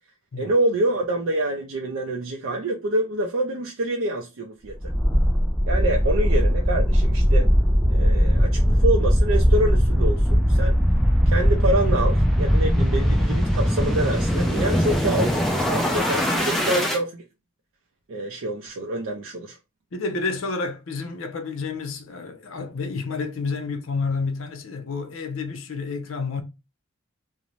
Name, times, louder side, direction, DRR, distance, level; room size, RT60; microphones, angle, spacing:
voice 1, 0.4-4.7 5.7-7.5 7.9-10.8 11.3-17.2 18.1-19.6, right 1 dB, 70° right, 0.4 m, -26 dB
sound 1, 4.8-17.0, equal, ahead, 0.3 m, -20 dB
voice 2, 19.9-26.4, left 4 dB, 70° left, 0.5 m, -29 dB
2.5 x 2.0 x 3.0 m
head